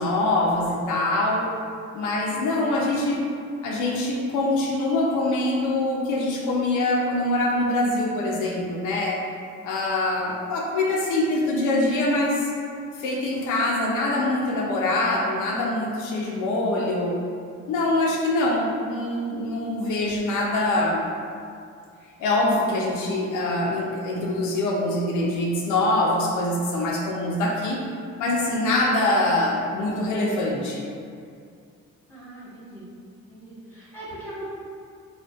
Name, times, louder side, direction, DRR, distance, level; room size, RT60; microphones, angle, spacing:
voice 1, 0.0-1.5 1.9-3.2 3.6-9.2 9.6-12.5 13.0-17.2 17.7-21.0 22.2-27.8 28.2-30.8, left 2 dB, 80° left, -3 dB, 0.5 m, -24 dB
voice 2, 32.1-32.8 33.3-34.5, right 1 dB, 5° left, -10 dB, 1.0 m, -40 dB
2.5 x 2.1 x 2.3 m, 2.3 s
cardioid pair, 90°, 30 cm